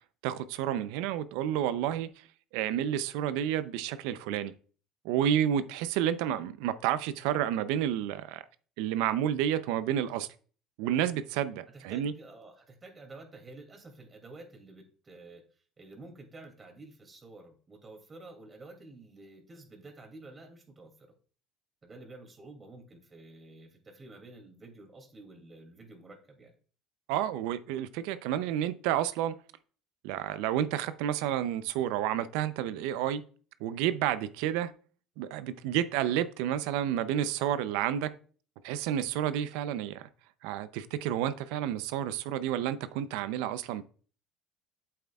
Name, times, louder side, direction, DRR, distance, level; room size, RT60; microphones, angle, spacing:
voice 1, 0.2-2.3 2.5-4.5 5.0-8.4 8.8-10.3 10.8-12.1 27.1-29.4 30.0-33.2 33.6-34.7 35.2-38.1 38.6-40.1 40.4-43.8, right 10 dB, 80° right, 0.6 m, -30 dB
voice 2, 11.7-21.1 21.8-26.5, right 2 dB, 30° right, 2.6 m, -50 dB
8.3 x 7.8 x 2.4 m
supercardioid pair, 85°, 0 cm